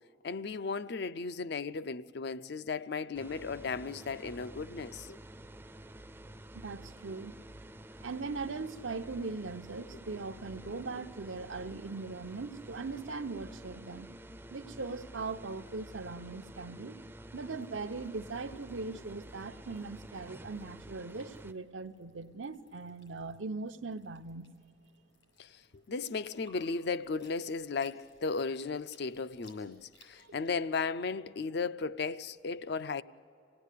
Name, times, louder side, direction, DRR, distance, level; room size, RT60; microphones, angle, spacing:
voice 1, 0.2-5.2 25.4-25.5 25.9-33.0, left 4 dB, 60° left, 0.5 m, -35 dB
sound 1, 3.1-21.5, right 1 dB, 10° right, 0.4 m, -50 dB
voice 2, 6.5-7.4 8.0-14.1 14.5-17.0 17.3-24.5 30.2-30.3, right 3 dB, 90° right, 0.8 m, -40 dB
sound 2, 17.4-30.5, left 2 dB, 80° left, 7.0 m, -66 dB
26.5 x 17.5 x 8.4 m
head